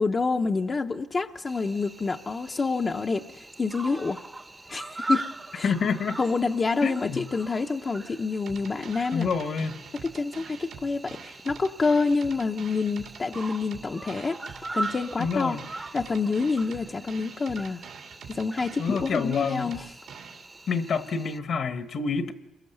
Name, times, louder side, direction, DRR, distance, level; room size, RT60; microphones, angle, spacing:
voice 1, 0.0-4.2 4.7-5.3 5.5-5.7 6.2-9.3 10.0-14.4 14.7-15.6 15.9-17.8 18.3-19.9, left 4 dB, 30° left, 3 dB, 0.8 m, -27 dB
Cricket, 1.5-21.4, right 2 dB, 20° right, 1.0 m, -40 dB
voice 2, 5.6-6.2 6.8-7.2 9.1-9.8 15.2-15.6 18.8-19.6 20.7-22.3, left 5 dB, 60° left, 9 dB, 1.4 m, -27 dB
sound 1, 8.5-20.5, right 7 dB, 75° right, 2.9 m, -45 dB
28.5 x 22.0 x 6.8 m, 1.0 s
cardioid pair, 90°, 0 cm